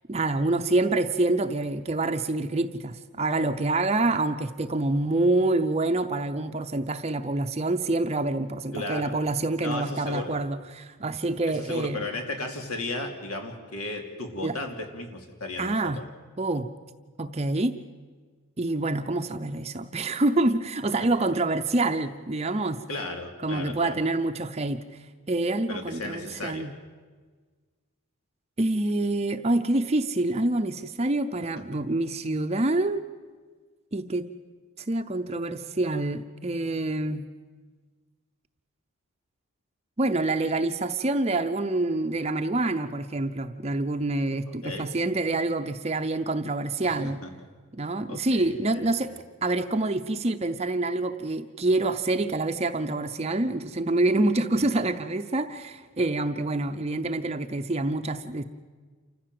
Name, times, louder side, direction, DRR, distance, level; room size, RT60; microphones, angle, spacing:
voice 1, 0.1-12.1 14.4-14.6 15.6-16.0 16.4-16.7 17.2-17.7 18.6-22.8 23.4-26.7 28.6-33.0 33.9-34.3 34.8-37.2 40.0-47.2 47.7-49.1 49.4-58.4, right 2 dB, 30° right, 7 dB, 0.6 m, -26 dB
voice 2, 8.7-9.1 9.6-10.3 11.6-16.0 21.0-21.1 22.9-24.0 25.7-26.7 31.6-31.8 44.6-44.9 46.8-46.9 48.1-49.2 54.8-54.9, left 2 dB, 80° left, 4 dB, 2.9 m, -35 dB
28.0 x 14.5 x 7.7 m, 1.5 s
head